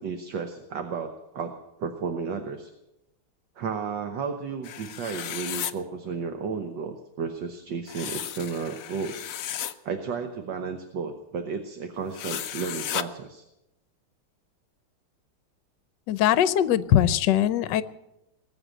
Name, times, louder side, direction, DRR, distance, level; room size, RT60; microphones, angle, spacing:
voice 1, 0.0-1.5 1.8-2.7 3.6-9.3 9.8-13.4, right 5 dB, 60° right, 6 dB, 1.6 m, -33 dB
sound 1, 4.6-5.7 7.9-9.7 12.1-13.0, left 10 dB, 85° left, 0.7 m, -34 dB
voice 2, 16.1-17.8, left 11 dB, 65° left, 15 dB, 1.2 m, -21 dB
20.0 x 8.2 x 8.8 m, 0.91 s
omnidirectional pair, 2.3 m